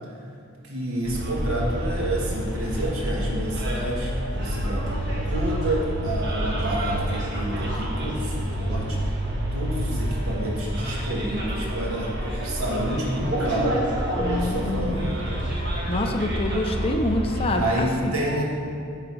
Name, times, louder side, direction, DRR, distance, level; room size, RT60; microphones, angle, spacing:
voice 1, 0.6-9.0 9.5-13.8 14.3-15.2 17.6-18.4, right 1 dB, 85° right, -3 dB, 1.6 m, -29 dB
Bus, 1.0-17.7, equal, 50° right, 1.3 m, -28 dB
voice 2, 14.2-15.2 15.9-18.2, left 1 dB, 25° left, 3 dB, 0.5 m, -26 dB
9.9 x 3.9 x 4.8 m, 2.5 s
head